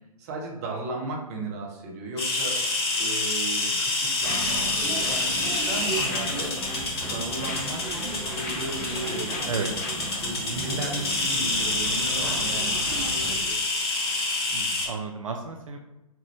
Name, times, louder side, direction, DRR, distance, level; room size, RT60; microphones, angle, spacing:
voice 1, 0.2-2.6 3.0-6.6 7.0-7.8 8.1-9.7 10.2-13.6, right 2 dB, 25° right, 0 dB, 0.7 m, -35 dB
sound 1, 2.2-14.9, left 2 dB, 40° left, 1.1 m, -28 dB
sound 2, 4.2-10.3, left 4 dB, 25° left, 0.5 m, -40 dB
sound 3, 4.2-13.3, right 2 dB, 5° left, 0.9 m, -36 dB
voice 2, 14.5-15.8, right 4 dB, 60° right, 3 dB, 0.4 m, -33 dB
3.5 x 3.3 x 3.1 m, 0.98 s
figure-of-eight pair, 130°, 19 cm